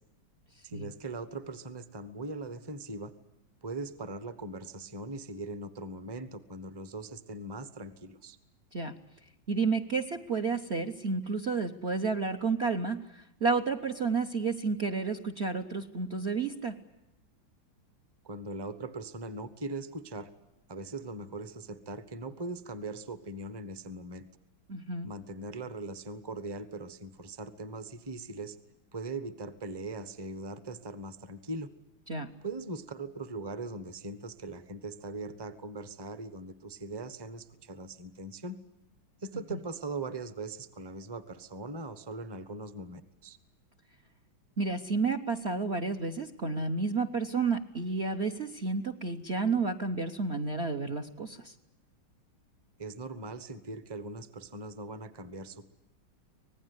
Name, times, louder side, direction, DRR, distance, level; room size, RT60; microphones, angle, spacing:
voice 1, 0.6-3.1 3.6-8.4 18.2-20.3 20.7-24.3 25.0-28.6 28.9-31.7 32.4-38.6 39.2-43.4 52.8-55.7, right 2 dB, 15° right, 12 dB, 0.9 m, -40 dB
voice 2, 9.5-16.8 24.7-25.1 32.1-32.3 39.5-39.6 44.6-51.5, right 4 dB, 45° right, 9 dB, 1.0 m, -31 dB
25.5 x 19.0 x 9.8 m, 0.94 s
omnidirectional pair, 2.2 m